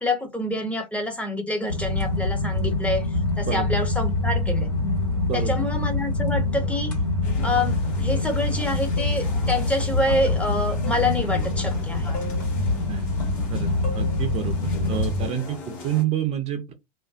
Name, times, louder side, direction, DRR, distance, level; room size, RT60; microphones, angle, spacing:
voice 1, 0.0-3.1 3.4-4.7 5.3-7.0 7.4-12.1, left 1 dB, 5° left, 0.6 m, -27 dB
sound 1, 1.7-15.3, left 2 dB, 85° left, 1.1 m, -25 dB
voice 2, 5.3-5.7 12.9-13.1 13.5-13.7 13.9-14.6 14.9-16.7, right 10 dB, 35° right, 0.5 m, -28 dB
sound 2, 7.2-16.0, left 3 dB, 45° left, 1.1 m, -40 dB
2.5 x 2.1 x 2.3 m
figure-of-eight pair, 80°, 19 cm